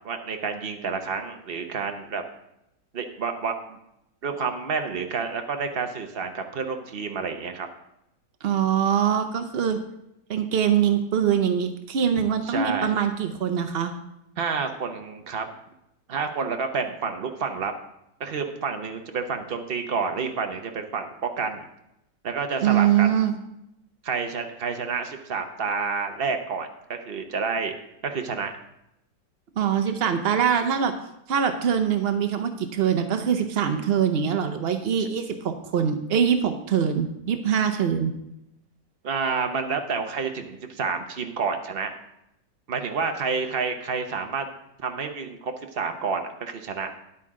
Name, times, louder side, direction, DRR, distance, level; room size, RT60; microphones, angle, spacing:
voice 1, 0.0-2.2 2.9-3.8 4.2-7.7 12.4-13.0 14.4-15.5 16.1-17.7 18.2-21.6 22.2-23.2 24.0-27.7 28.0-28.5 35.0-35.1 39.0-41.9 42.7-44.5 44.8-46.9, right 5 dB, 45° right, 5 dB, 0.8 m, -29 dB
voice 2, 8.4-9.8 10.3-13.9 22.6-23.4 29.6-30.9 31.3-38.1, right 8 dB, 80° right, 7 dB, 0.5 m, -23 dB
10.5 x 8.7 x 3.7 m, 0.83 s
omnidirectional pair, 1.9 m